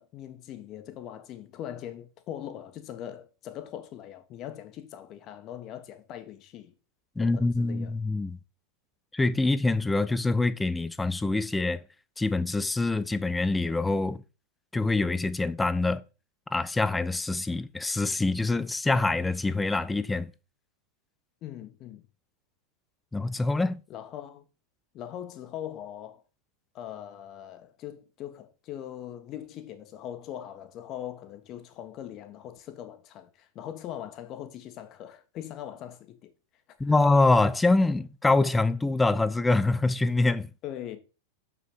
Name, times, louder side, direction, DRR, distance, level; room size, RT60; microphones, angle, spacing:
voice 1, 0.0-6.7 7.2-7.9 21.4-22.0 23.9-24.4 24.9-26.2 26.7-36.3 36.8-37.0 40.6-41.0, left 11 dB, 35° left, 1.4 m, -41 dB
voice 2, 7.2-8.4 9.1-11.8 12.2-14.2 14.7-16.0 16.5-20.3 23.1-23.8 36.8-40.5, left 2 dB, 10° left, 0.6 m, -25 dB
6.8 x 6.1 x 5.4 m
figure-of-eight pair, 90°, 0 cm